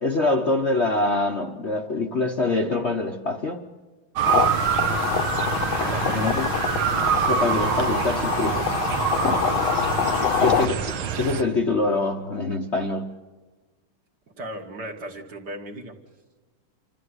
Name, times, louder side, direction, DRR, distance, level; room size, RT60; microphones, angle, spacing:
voice 1, 0.0-3.6 4.9-5.1 6.1-6.5 7.3-8.8 9.2-9.4 10.4-10.9 11.2-13.1, left 3 dB, 40° left, 1.0 m, -25 dB
Motor vehicle (road) / Siren, 4.2-11.4, right 8 dB, 70° right, 1.8 m, -26 dB
sound 1, 4.3-10.7, left 8 dB, 70° left, 1.8 m, -25 dB
voice 2, 5.7-6.2 9.2-10.6 14.4-16.0, right 1 dB, 50° right, 2.4 m, -35 dB
27.5 x 14.0 x 9.6 m
omnidirectional pair, 2.4 m